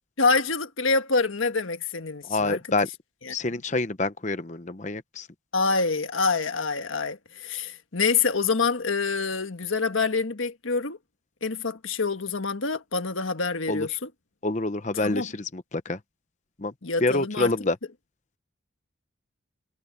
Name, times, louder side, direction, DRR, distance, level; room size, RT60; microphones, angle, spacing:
voice 1, 0.2-2.6 3.2-3.3 5.5-11.0 11.4-14.1 15.0-15.3 16.8-17.5, left 4 dB, 80° left, 1.5 m, -26 dB
voice 2, 2.3-2.9 3.3-5.3 13.7-13.9 14.4-16.0 16.6-16.7 17.0-17.8, left 2 dB, 35° left, 0.9 m, -27 dB
head